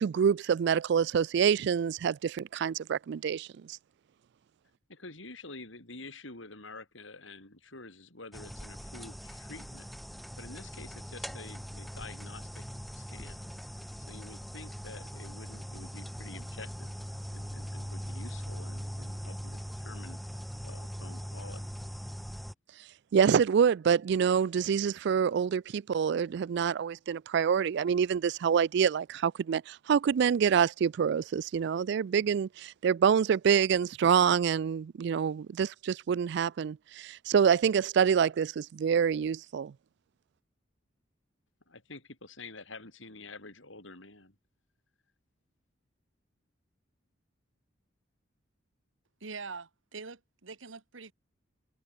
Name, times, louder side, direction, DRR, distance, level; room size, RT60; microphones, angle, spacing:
voice 1, 0.0-3.5 23.1-39.7, right 7 dB, 60° right, 0.3 m, -26 dB
voice 2, 4.9-12.6 12.9-13.5 13.8-16.9 17.3-20.2 20.6-21.7 41.7-44.3, left 3 dB, 80° left, 6.5 m, -48 dB
sound 1, 8.3-22.5, equal, ahead, 0.6 m, -41 dB
voice 3, 49.2-51.1, right 4 dB, 80° right, 1.6 m, -43 dB
head